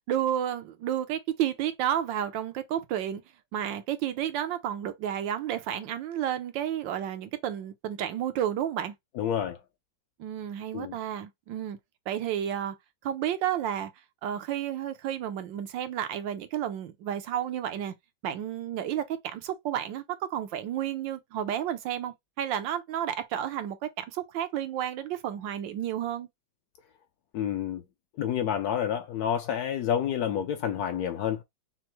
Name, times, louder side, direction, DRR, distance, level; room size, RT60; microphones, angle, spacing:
voice 1, 0.1-3.2 3.5-8.9 10.2-11.8 12.1-12.7 13.0-13.9 14.2-17.9 18.2-26.3, right 10 dB, 85° right, 1.4 m, -31 dB
voice 2, 9.2-9.6 10.7-10.9 27.3-27.8 28.2-31.4, left 9 dB, 70° left, 1.0 m, -29 dB
5.6 x 2.1 x 3.0 m
omnidirectional pair, 2.0 m